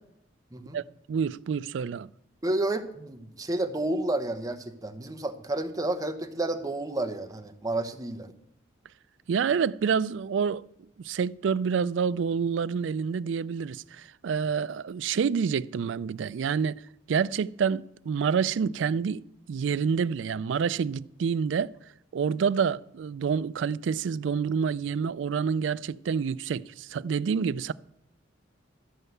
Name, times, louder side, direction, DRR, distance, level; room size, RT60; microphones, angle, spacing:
voice 1, 1.1-2.1 9.3-10.6 11.0-16.7 17.1-21.7 22.1-27.7, right 6 dB, 75° right, 0.4 m, -28 dB
voice 2, 2.4-8.3, right 2 dB, 20° right, 0.9 m, -30 dB
13.0 x 5.5 x 7.9 m
head